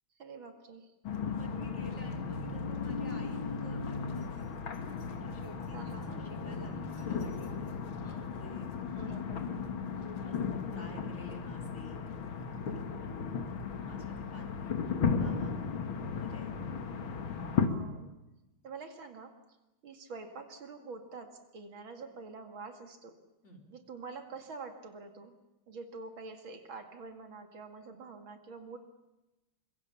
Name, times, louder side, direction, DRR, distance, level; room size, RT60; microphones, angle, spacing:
voice 1, 0.2-0.9 5.7-6.3 9.0-9.6 17.6-18.2 18.6-19.4 19.8-23.2 23.7-25.4 25.7-28.8, right 4 dB, 75° right, 6 dB, 2.9 m, -46 dB
sound 1, 1.0-17.7, left 5 dB, 75° left, 2.5 m, -35 dB
voice 2, 1.2-4.5 5.1-7.5 8.0-8.7 10.2-12.0 12.7-13.4 13.8-14.8 15.2-15.6 16.0-16.5 23.4-23.6, equal, 35° left, 1 dB, 4.3 m, -51 dB
25.0 x 23.5 x 7.1 m, 1.0 s
omnidirectional pair, 2.2 m